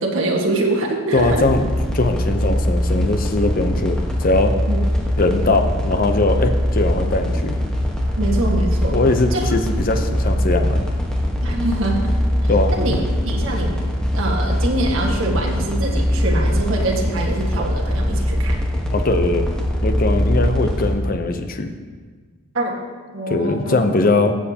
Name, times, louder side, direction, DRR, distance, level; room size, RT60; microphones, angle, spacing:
voice 1, 0.0-1.4 4.7-4.8 8.2-9.0 9.3-9.4 11.4-12.1 12.4-13.7 14.1-18.6 22.5-22.8 23.1-23.8, right 2 dB, 60° right, -2 dB, 1.6 m, -24 dB
voice 2, 1.1-4.5 5.2-7.5 8.9-10.8 12.5-13.0 18.9-19.5 19.8-21.7 23.3-24.3, left 2 dB, 40° left, 7 dB, 0.6 m, -20 dB
sound 1, 1.2-20.9, equal, 5° left, 1.2 m, -21 dB
15.0 x 7.5 x 2.8 m, 1.5 s
head